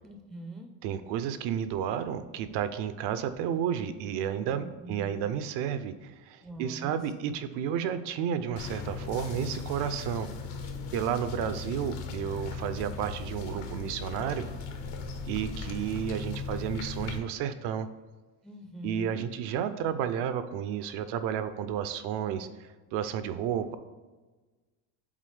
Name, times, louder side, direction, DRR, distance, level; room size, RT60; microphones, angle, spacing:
voice 1, 0.0-0.7 4.4-5.2 6.4-7.0 18.4-19.3, right 1 dB, ahead, 4 dB, 0.4 m, -43 dB
voice 2, 0.8-10.3 10.9-14.5 15.3-17.9 18.8-22.5 22.9-23.8, right 9 dB, 65° right, 11 dB, 0.6 m, -32 dB
sound 1, 8.6-17.2, left 5 dB, 70° left, 1.1 m, -38 dB
7.4 x 3.8 x 3.3 m, 1.3 s
cardioid pair, 120°, 45 cm